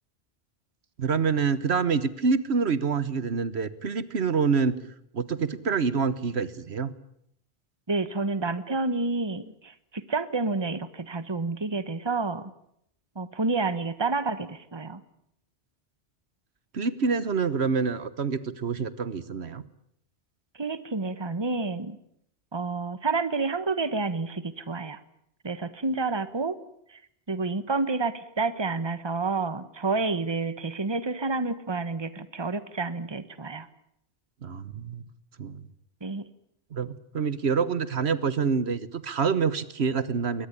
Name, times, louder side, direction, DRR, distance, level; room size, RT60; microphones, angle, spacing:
voice 1, 1.0-4.7 5.1-6.9 16.7-19.6 34.4-35.0 35.4-35.6 36.7-40.5, right 5 dB, 80° right, 16 dB, 1.4 m, -26 dB
voice 2, 7.9-12.5 13.1-15.0 20.6-22.0 22.5-25.0 25.4-26.6 26.9-27.0 27.3-33.7 36.0-36.3, right 3 dB, 25° right, 14 dB, 1.3 m, -29 dB
22.5 x 19.0 x 9.9 m, 0.73 s
omnidirectional pair, 1.1 m